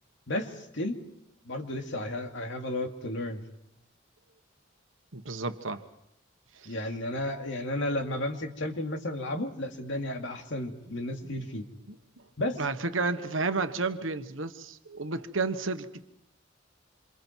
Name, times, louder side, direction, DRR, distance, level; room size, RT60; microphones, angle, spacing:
voice 1, 0.3-1.0 1.4-3.4 6.6-11.7 12.4-12.6, left 1 dB, 65° left, 4 dB, 2.6 m, -33 dB
voice 2, 5.1-5.8 6.5-6.7 11.2-11.3 11.9-12.0 12.6-16.1, right 3 dB, 75° right, 9 dB, 1.3 m, -31 dB
28.0 x 26.5 x 4.6 m, 0.80 s
head